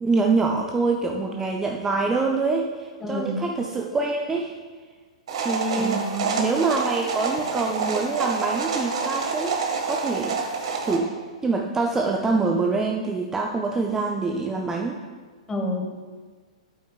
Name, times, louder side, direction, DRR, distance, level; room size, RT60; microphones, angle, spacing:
voice 1, 0.0-4.5 5.4-6.0 6.4-9.6 9.9-10.4 10.8-11.2 11.4-15.0, right 3 dB, 15° right, 2 dB, 0.5 m, -25 dB
voice 2, 3.0-3.4 5.7-6.5 15.5-15.8, equal, 15° left, 2 dB, 1.3 m, -29 dB
horse hooves on stone, 5.3-11.0, right 4 dB, 65° right, 1.5 m, -27 dB
8.7 x 8.2 x 2.3 m, 1.5 s
hypercardioid pair, 115°, 4 cm